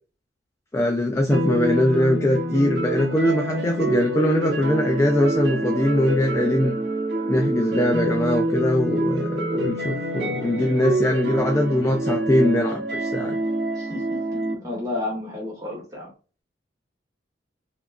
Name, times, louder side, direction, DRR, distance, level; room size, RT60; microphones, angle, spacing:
voice 1, 0.7-6.8 7.3-13.4, left 1 dB, 15° left, 0.3 m, -22 dB
sound 1, 1.3-14.5, right 1 dB, 65° right, 0.8 m, -26 dB
voice 2, 13.7-16.1, left 2 dB, 20° right, 1.3 m, -32 dB
3.6 x 3.1 x 2.3 m
head